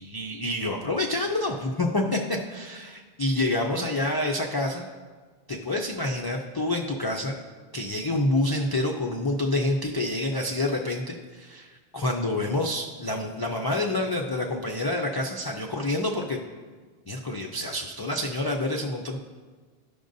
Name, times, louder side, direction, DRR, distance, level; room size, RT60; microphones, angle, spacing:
voice 1, 0.0-4.9 5.5-7.4 7.7-16.4 17.1-19.2, left 1 dB, 40° left, 0 dB, 0.3 m, -28 dB
13.0 x 5.1 x 2.6 m, 1.4 s
omnidirectional pair, 1.1 m